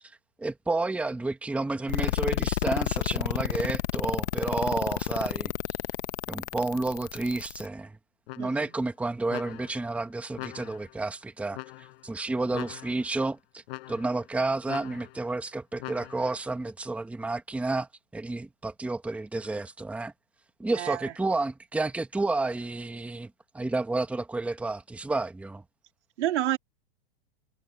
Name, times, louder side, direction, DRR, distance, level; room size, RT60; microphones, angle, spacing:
voice 1, 0.4-5.5 6.3-8.0 8.4-20.1 20.6-25.6, right 2 dB, 5° right, 1.1 m, -31 dB
sound 1, 1.9-7.7, left 14 dB, 80° left, 1.2 m, -30 dB
sound 2, 8.3-8.8 9.3-9.9 10.4-11.0 11.5-12.1 12.5-13.2 13.7-14.3 14.7-15.3 15.8-16.4, left 21 dB, 55° left, 6.5 m, -42 dB
voice 2, 20.8-21.1 26.2-26.6, right 13 dB, 85° right, 3.3 m, -28 dB
supercardioid pair, 145°, 34 cm